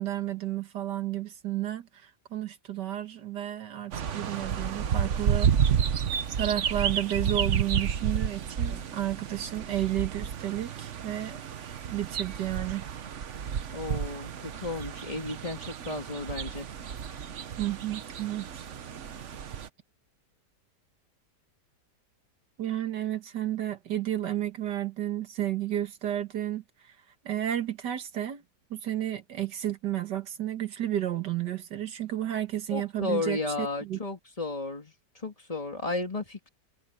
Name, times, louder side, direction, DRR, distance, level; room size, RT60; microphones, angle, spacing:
voice 1, 0.0-5.8 6.4-11.4 11.8-12.9 17.6-18.6 22.6-26.6 27.2-28.4 28.7-34.0, right 12 dB, 75° right, 2.0 m, -32 dB
sound 1, 3.9-19.7, right 8 dB, 50° right, 1.1 m, -31 dB
voice 2, 13.7-16.7 32.7-34.9 35.2-36.5, left 3 dB, 20° left, 3.0 m, -33 dB
omnidirectional pair, 1.8 m